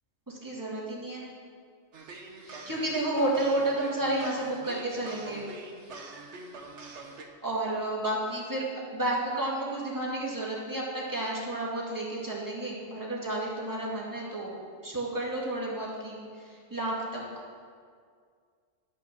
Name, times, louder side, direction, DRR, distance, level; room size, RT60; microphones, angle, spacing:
voice 1, 0.3-1.3 2.4-5.4 7.4-8.6 8.9-14.6 14.8-17.2, right 1 dB, 15° right, -5 dB, 2.1 m, -31 dB
sound 1, 1.9-7.2, right 3 dB, 70° right, 1.4 m, -44 dB
11.0 x 6.0 x 6.5 m, 2.1 s
omnidirectional pair, 1.3 m